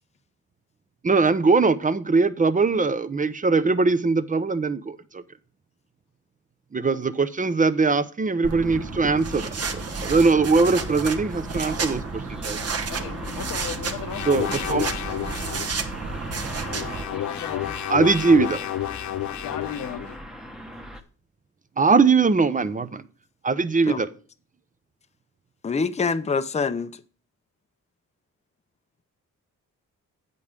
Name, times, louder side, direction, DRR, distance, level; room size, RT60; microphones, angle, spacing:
voice 1, 1.0-5.0 6.7-12.6 14.3-14.9 17.9-18.6 21.8-23.0 23.4-24.1, right 4 dB, 25° right, 0.6 m, -21 dB
sound 1, 8.4-17.0, right 4 dB, 50° right, 1.2 m, -31 dB
sound 2, 9.6-21.0, equal, ahead, 1.0 m, -41 dB
voice 2, 12.9-14.3 17.1-17.8 19.3-20.2, left 9 dB, 80° left, 1.0 m, -36 dB
sound 3, 14.1-15.7 16.5-20.1, left 14 dB, 65° left, 0.5 m, -31 dB
voice 3, 25.6-27.0, left 4 dB, 20° left, 0.6 m, -25 dB
8.2 x 5.4 x 5.1 m
cardioid pair, 75°, 32 cm